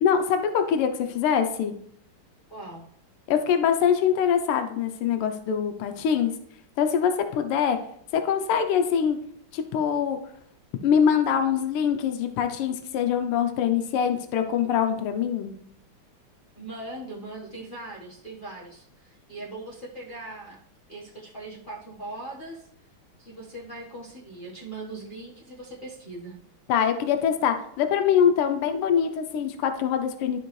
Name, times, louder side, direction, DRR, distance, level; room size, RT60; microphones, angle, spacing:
voice 1, 0.0-1.7 3.3-6.3 6.8-7.8 8.1-9.2 9.5-10.2 10.8-15.5 26.7-30.4, left 8 dB, 90° left, 7 dB, 1.6 m, -23 dB
voice 2, 2.5-2.9 16.5-20.6 20.9-22.7 23.2-26.4, right 2 dB, 30° left, -6 dB, 1.1 m, -40 dB
12.5 x 4.4 x 3.1 m, 0.67 s
omnidirectional pair, 2.4 m